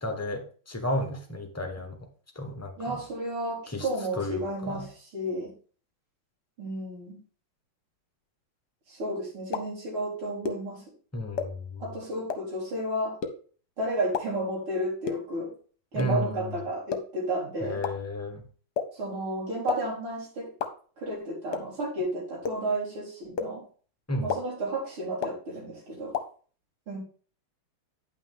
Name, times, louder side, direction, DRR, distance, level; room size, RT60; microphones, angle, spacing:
voice 1, 0.0-2.0 2.3-3.0 3.7-3.9 4.2-4.8 11.1-11.8 15.9-16.6 17.6-18.4 24.1-24.3, left 1 dB, 15° left, 4 dB, 0.6 m, -32 dB
voice 2, 2.8-5.5 6.6-7.2 8.9-10.8 11.8-13.2 13.8-15.5 15.9-17.8 18.9-20.5 21.0-23.6 24.2-26.2 26.9-27.0, right 1 dB, 80° right, -6 dB, 4.9 m, -32 dB
sound 1, 9.5-9.6 10.4-10.5 11.4-11.5 12.3-12.4 13.2-13.3 14.1-14.2 15.1-15.2 16.0-16.1 16.9-17.0 17.8-17.9 18.8-18.9 19.7-19.8 20.6-20.7 21.5-21.6 22.4-22.5 23.4-23.5 24.3-24.4 25.2-25.3 26.1-26.2, left 6 dB, 60° left, 1.3 m, -28 dB
9.7 x 5.8 x 3.7 m, 0.41 s
omnidirectional pair, 2.4 m